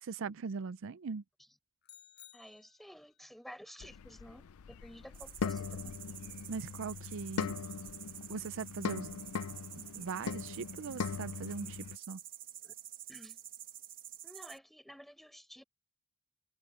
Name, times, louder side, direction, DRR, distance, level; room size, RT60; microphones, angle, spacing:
voice 1, 0.0-1.2 6.5-7.5 8.3-9.2 9.9-12.2, right 5 dB, 65° right, 0.5 m, -40 dB
sound 1, 1.8-3.2, left 10 dB, 55° left, 6.0 m, -58 dB
voice 2, 2.3-5.9 12.6-12.7 13.1-13.4 14.2-15.6, equal, ahead, 4.9 m, -52 dB
sound 2, 3.8-12.0, left 5 dB, 80° left, 0.5 m, -40 dB
sound 3, 5.1-14.6, right 11 dB, 40° right, 1.4 m, -49 dB
head